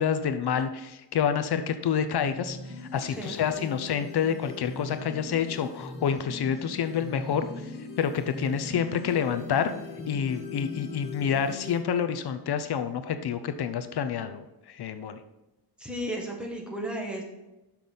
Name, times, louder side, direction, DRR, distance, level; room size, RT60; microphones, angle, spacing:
voice 1, 0.0-9.7 10.1-15.2, left 7 dB, 75° left, 10 dB, 0.7 m, -28 dB
sound 1, 2.2-11.8, left 3 dB, 55° left, 1.6 m, -40 dB
voice 2, 3.1-3.5 15.8-17.2, right 1 dB, ahead, -1 dB, 1.6 m, -34 dB
6.6 x 6.0 x 5.4 m, 0.98 s
wide cardioid pair, 135°, 39 cm